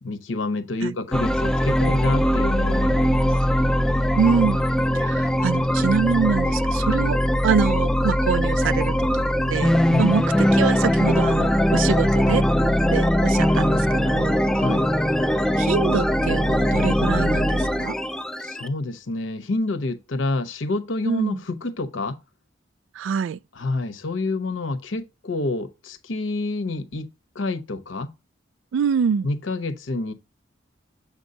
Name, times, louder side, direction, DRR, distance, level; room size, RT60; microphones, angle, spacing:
voice 1, 0.0-3.3 9.9-10.2 14.5-14.8 18.4-22.2 23.5-27.1 27.3-28.1 29.2-30.1, left 2 dB, 80° left, 0.9 m, -28 dB
sound 1, 1.1-18.7, equal, 5° left, 0.3 m, -21 dB
voice 2, 4.2-4.6 4.9-7.2 7.4-8.9 9.5-10.3 10.5-12.4 12.9-14.4 15.3-18.0 21.0-21.4 23.0-23.4 28.7-29.3, right 6 dB, 80° right, 0.3 m, -25 dB
7.2 x 5.3 x 2.7 m
head